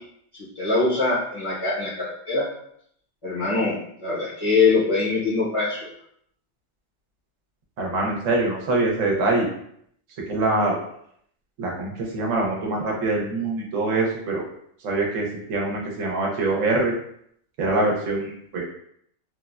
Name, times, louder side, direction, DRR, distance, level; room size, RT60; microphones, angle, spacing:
voice 1, 0.5-2.4 3.2-5.9, left 3 dB, 35° left, -8 dB, 0.6 m, -23 dB
voice 2, 7.8-9.5 10.2-10.8 11.6-14.5 14.8-16.9 17.6-18.7, right 2 dB, 80° right, -2 dB, 1.1 m, -24 dB
3.1 x 2.1 x 2.3 m, 0.69 s
omnidirectional pair, 1.3 m